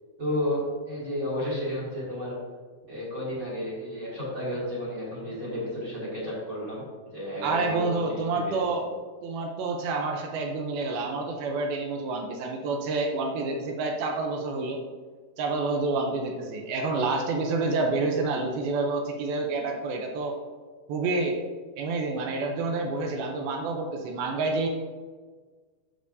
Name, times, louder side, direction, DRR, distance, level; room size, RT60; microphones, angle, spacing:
voice 1, 0.2-2.4 2.9-6.8 7.1-8.8, left 1 dB, 30° right, -6 dB, 2.5 m, -32 dB
voice 2, 7.4-8.9 9.2-14.8 15.4-20.4 20.9-21.4 21.8-24.7, right 3 dB, 85° right, 2 dB, 2.1 m, -28 dB
13.5 x 6.9 x 2.7 m, 1.5 s
omnidirectional pair, 5.3 m